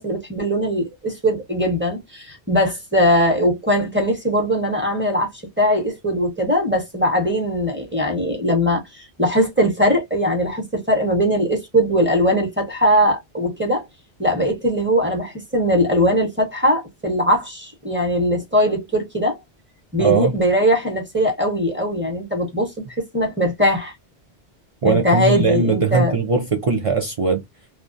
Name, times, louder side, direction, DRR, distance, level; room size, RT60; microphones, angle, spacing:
voice 1, 0.0-5.3 5.6-13.8 14.2-19.4 19.9-23.9 24.8-26.2, equal, 10° right, 0.8 m, -20 dB
voice 2, 20.0-20.3 24.8-27.4, right 5 dB, 50° right, 0.4 m, -19 dB
2.2 x 2.2 x 2.5 m
omnidirectional pair, 1.1 m